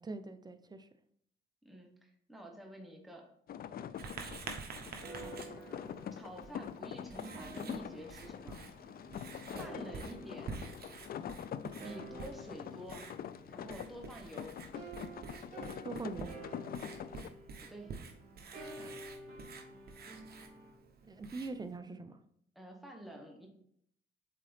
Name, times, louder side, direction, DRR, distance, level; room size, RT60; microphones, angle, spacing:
voice 1, 0.0-0.9 5.2-5.3 15.8-16.3 18.8-19.0 21.0-22.2, right 3 dB, 20° right, 10 dB, 0.6 m, -43 dB
voice 2, 1.6-3.3 5.5-8.6 9.6-10.6 11.8-13.1 13.5-14.5 17.6-17.9 22.5-23.5, equal, ahead, 0 dB, 1.3 m, -49 dB
sound 1, 3.5-17.3, left 9 dB, 50° left, 0.4 m, -45 dB
Writing, 4.0-21.8, right 5 dB, 50° right, 1.0 m, -49 dB
sound 2, 4.5-14.2 14.7-20.7, right 2 dB, 35° right, 2.3 m, -51 dB
7.7 x 3.8 x 3.4 m, 0.69 s
cardioid pair, 90°, 20 cm